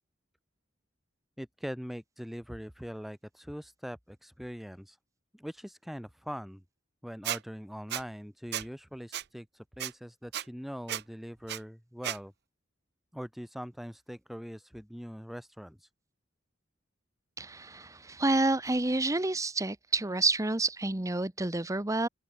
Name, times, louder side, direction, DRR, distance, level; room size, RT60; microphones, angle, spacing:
voice 1, 1.4-5.0 5.3-6.6 7.0-12.3 13.1-15.9, equal, ahead, 2.9 m, -42 dB
Squeak, 7.2-7.4 7.9-8.0 8.5-8.7 9.1-9.2 9.8-9.9 10.3-10.4 10.9-11.0 11.5-11.6 12.0-12.2, right 12 dB, 60° right, 0.6 m, -33 dB
voice 2, 17.4-22.1, right 2 dB, 15° right, 1.0 m, -29 dB
open air
head